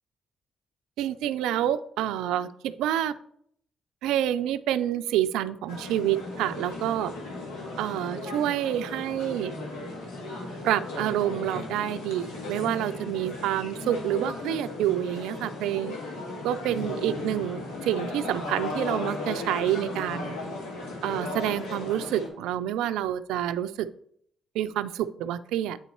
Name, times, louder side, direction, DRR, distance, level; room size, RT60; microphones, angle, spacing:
voice 1, 1.0-3.1 4.0-7.1 7.8-9.5 10.6-15.9 16.4-20.4 21.0-23.9 24.5-25.8, right 11 dB, 80° right, 14 dB, 0.3 m, -28 dB
sound 1, 5.7-22.3, left 2 dB, 80° left, 1.7 m, -36 dB
8.3 x 4.0 x 4.5 m, 0.67 s
hypercardioid pair, 50°, 0 cm